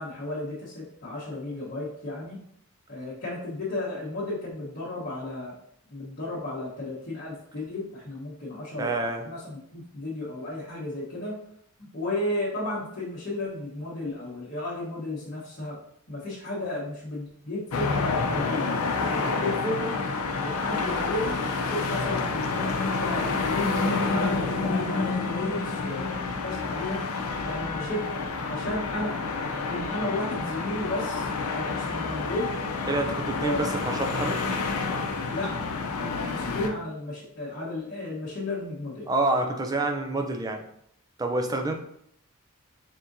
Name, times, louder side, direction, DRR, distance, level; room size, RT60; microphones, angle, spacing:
voice 1, 0.0-2.4 2.9-5.5 5.9-11.4 11.8-15.8 16.1-20.0 20.4-27.0 27.4-32.6 33.4-33.6 35.3-35.6 36.0-39.1, left 1 dB, 45° left, -8 dB, 1.1 m, -33 dB
voice 2, 8.8-9.3 32.9-34.4 39.1-40.6 41.2-41.7, right 2 dB, 15° right, 4 dB, 0.4 m, -27 dB
sound 1, 17.7-36.7, left 4 dB, 75° left, 0.5 m, -29 dB
4.2 x 3.6 x 2.6 m, 0.72 s
head